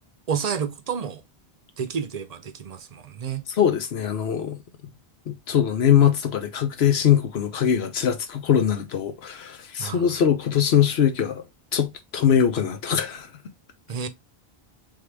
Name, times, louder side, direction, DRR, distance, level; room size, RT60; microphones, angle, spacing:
voice 1, 0.3-1.2 1.8-3.5 9.8-10.1 13.9-14.1, right 7 dB, 45° right, 0.6 m, -30 dB
voice 2, 3.6-4.6 5.3-11.4 11.7-13.3, left 9 dB, 85° left, 1.1 m, -22 dB
3.8 x 3.7 x 3.2 m
omnidirectional pair, 1.0 m